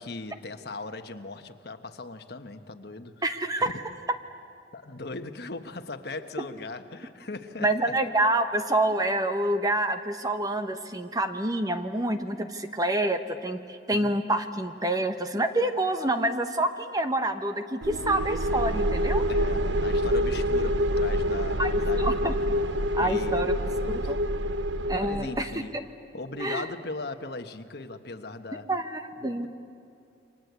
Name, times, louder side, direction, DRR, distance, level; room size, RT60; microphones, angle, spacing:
voice 1, 0.0-3.2 3.6-3.7 4.7-7.9 13.9-14.2 19.3-22.4 23.0-24.1 25.0-25.7 26.1-28.7 29.2-29.5, left 3 dB, 60° left, 7 dB, 1.3 m, -39 dB
voice 2, 3.2-3.7 7.6-19.2 21.6-22.3 22.9-23.5 23.9-24.2 24.9-25.5 26.4-26.7 28.7-29.5, right 1 dB, 20° right, 8 dB, 1.1 m, -27 dB
sound 1, 17.8-25.6, equal, 85° right, 0.8 m, -26 dB
29.0 x 24.5 x 8.2 m, 2.5 s
head